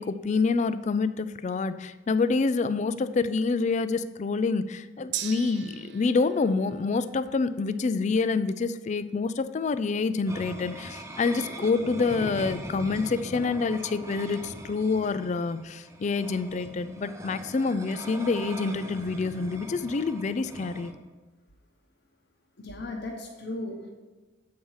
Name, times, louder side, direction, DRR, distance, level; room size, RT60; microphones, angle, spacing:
voice 1, 0.0-20.9, left 4 dB, 35° left, 13 dB, 0.3 m, -27 dB
Gong, 5.1-12.9 13.2-13.3, right 11 dB, 55° right, 0.5 m, -44 dB
sound 1, 10.3-20.9, right 1 dB, 15° right, 0.7 m, -41 dB
voice 2, 22.6-23.9, left 2 dB, 55° left, 0 dB, 0.9 m, -36 dB
8.4 x 4.7 x 5.5 m, 1.3 s
head